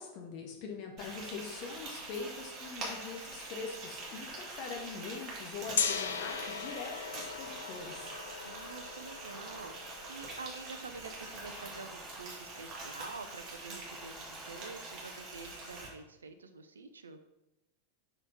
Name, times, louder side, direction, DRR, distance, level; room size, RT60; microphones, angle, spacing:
voice 1, 0.0-8.1, left 5 dB, 40° left, 2 dB, 1.4 m, -43 dB
Frying (food), 1.0-15.9, right 2 dB, 30° right, 2.2 m, -45 dB
Gong, 5.8-11.7, left 7 dB, 65° left, 0.5 m, -39 dB
sound 1, 7.5-8.1 9.3-10.2 11.4-12.6 13.9-15.5, equal, ahead, 0.6 m, -54 dB
voice 2, 8.4-17.2, right 4 dB, 70° right, 8 dB, 0.5 m, -47 dB
6.0 x 5.4 x 4.2 m, 0.97 s
figure-of-eight pair, 90°, 0 cm